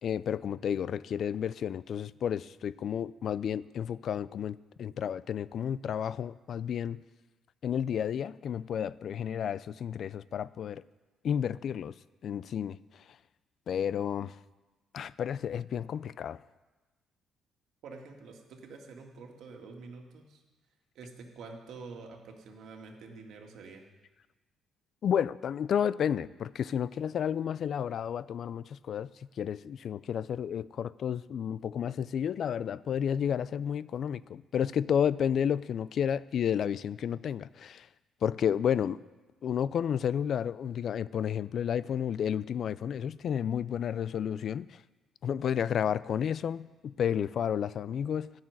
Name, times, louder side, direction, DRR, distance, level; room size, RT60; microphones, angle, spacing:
voice 1, 0.0-7.0 7.6-10.8 11.2-11.9 12.2-13.0 13.7-14.4 14.9-16.4 25.0-29.1 29.4-37.9 38.2-39.0 39.4-44.8 45.2-48.3, left 8 dB, 55° left, 19 dB, 0.3 m, -31 dB
voice 2, 17.8-20.4 21.0-23.9, right 4 dB, 70° right, 2 dB, 1.9 m, -47 dB
12.5 x 6.5 x 9.5 m, 1.2 s
cardioid pair, 120°, 0 cm